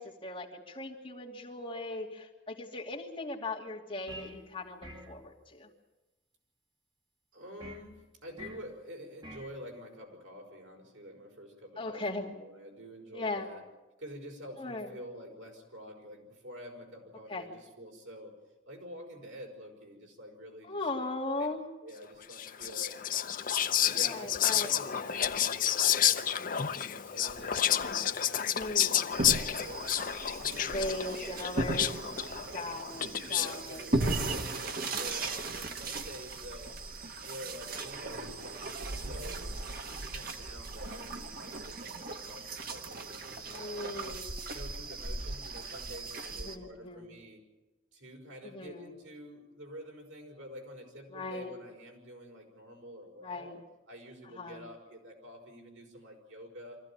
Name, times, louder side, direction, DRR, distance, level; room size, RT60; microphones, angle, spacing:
voice 1, 0.0-5.7 11.8-12.3 13.1-13.5 14.6-14.9 17.3-17.5 20.6-21.6 24.0-24.7 28.4-29.0 30.6-31.9 32.5-33.8 43.5-44.4 46.4-47.1 48.4-48.9 51.1-51.5 53.2-53.6 54.3-54.6, left 2 dB, 25° left, -2 dB, 2.7 m, -38 dB
sound 1, 4.1-4.4 4.8-5.2 7.6-7.9 8.4-8.7 9.2-9.5, equal, 25° right, 2.3 m, -46 dB
voice 2, 7.3-13.6 14.0-18.3 18.7-21.1 21.4-21.5 21.8-23.0 23.8-29.8 30.2-31.5 33.2-36.7 37.2-38.6 38.9-39.6 40.1-43.9 44.5-47.4 47.9-53.5 53.9-56.8, equal, 80° right, 1 dB, 5.7 m, -48 dB
Whispering, 22.3-33.6, left 10 dB, 45° left, 0.7 m, -30 dB
sound 2, 29.1-46.6, right 2 dB, 45° right, 1.4 m, -37 dB
24.5 x 15.5 x 8.9 m, 1.1 s
head